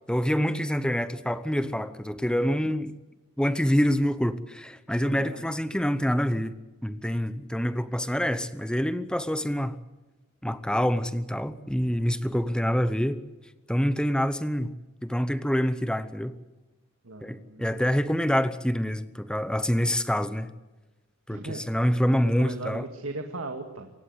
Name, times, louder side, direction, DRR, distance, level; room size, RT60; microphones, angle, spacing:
voice 1, 0.1-2.9 3.4-6.5 6.8-9.8 10.4-13.2 13.7-14.7 15.0-16.3 17.2-20.5 21.3-22.9, equal, 5° left, 0.8 m, -26 dB
voice 2, 5.0-5.5 17.0-17.6 21.3-21.6 22.4-24.0, right 2 dB, 80° right, 2.0 m, -38 dB
27.0 x 16.0 x 8.0 m
head